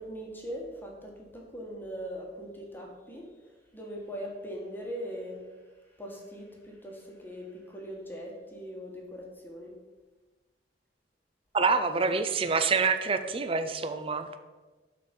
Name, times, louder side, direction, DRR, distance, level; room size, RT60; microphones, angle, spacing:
voice 1, 0.0-3.3 3.7-5.5 6.0-9.7, equal, 10° left, -1 dB, 1.5 m, -40 dB
voice 2, 11.5-14.3, right 4 dB, 30° right, 9 dB, 0.5 m, -26 dB
11.5 x 4.4 x 5.3 m, 1.3 s
head